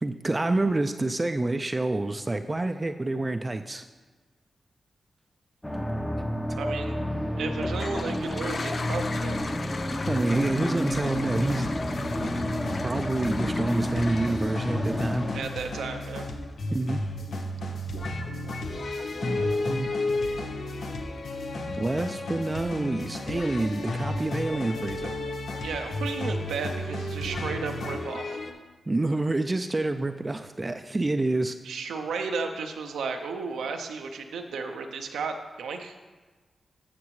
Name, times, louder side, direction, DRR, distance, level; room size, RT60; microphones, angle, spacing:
voice 1, 0.0-3.8 10.1-11.7 12.2-12.3 12.8-15.3 16.7-17.0 19.2-19.9 21.8-25.1 28.9-31.5, right 2 dB, 30° right, 7 dB, 0.4 m, -28 dB
sound 1, 5.6-15.4, left 1 dB, 10° left, 0.8 m, -30 dB
voice 2, 6.6-7.0 7.4-9.4 15.3-16.3 19.3-19.8 25.6-28.4 31.6-35.9, right 4 dB, 90° right, 5 dB, 0.6 m, -34 dB
Toilet flush, 7.5-16.4, left 4 dB, 55° left, 0.4 m, -39 dB
sound 2, 10.0-28.5, left 2 dB, 80° left, 0.8 m, -33 dB
13.0 x 5.9 x 3.2 m, 1.4 s
cardioid pair, 45°, 0 cm